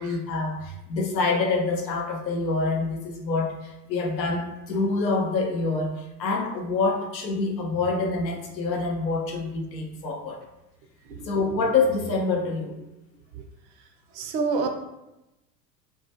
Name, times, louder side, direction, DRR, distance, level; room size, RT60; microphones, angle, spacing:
voice 1, 0.0-5.9 6.2-10.4 11.2-12.8, left 3 dB, 85° left, 2 dB, 0.6 m, -26 dB
voice 2, 14.1-14.7, right 4 dB, 45° right, 4 dB, 0.4 m, -28 dB
2.2 x 2.1 x 2.7 m, 0.95 s
figure-of-eight pair, 80°, 49 cm